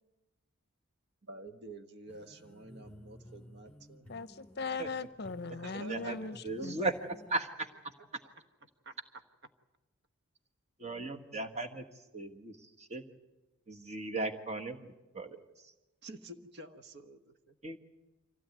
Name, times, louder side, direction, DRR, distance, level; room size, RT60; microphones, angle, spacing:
voice 1, 1.2-4.1 5.4-6.7 8.8-9.0 16.0-17.6, right 2 dB, 50° right, 9 dB, 1.2 m, -49 dB
sound 1, 2.1-7.4, left 1 dB, 5° left, 2.3 m, -55 dB
voice 2, 4.1-6.8, left 4 dB, 45° left, 15 dB, 0.7 m, -39 dB
voice 3, 5.7-6.2 6.4-6.9 7.3-7.5 10.8-11.8 12.1-13.0 13.7-15.4 17.6-17.8, right 2 dB, 30° right, 5 dB, 1.5 m, -37 dB
25.0 x 16.5 x 9.4 m, 1.0 s
head